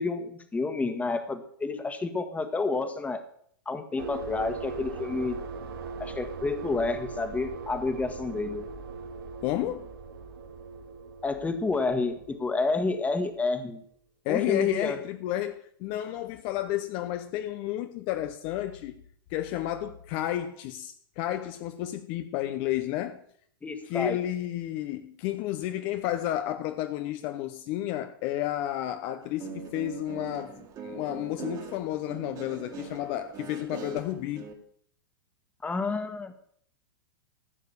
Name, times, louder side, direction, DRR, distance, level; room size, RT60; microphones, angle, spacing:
voice 1, 0.0-3.2 3.6-5.3 6.0-8.7 11.2-13.8 14.3-15.0 23.6-24.2 35.6-36.3, left 3 dB, 10° left, 1.6 m, -29 dB
sound 1, 4.0-13.5, right 4 dB, 75° right, 2.8 m, -40 dB
voice 2, 9.4-9.9 14.2-18.9 19.3-23.2 23.9-34.5, left 13 dB, 45° left, 0.8 m, -31 dB
Guitar, 29.2-34.5, right 5 dB, 30° right, 2.2 m, -41 dB
15.0 x 6.6 x 6.8 m
hypercardioid pair, 115°, 12 cm